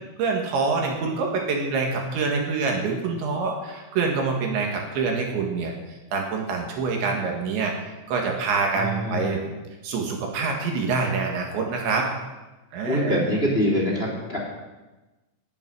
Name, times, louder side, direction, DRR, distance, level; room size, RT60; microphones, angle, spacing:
voice 1, 0.2-9.4 9.8-12.1 12.7-13.2, right 4 dB, 65° right, 1 dB, 3.9 m, -26 dB
voice 2, 8.7-9.4 12.9-14.4, equal, 15° left, -2 dB, 2.1 m, -24 dB
12.5 x 8.8 x 9.7 m, 1.1 s
omnidirectional pair, 6.0 m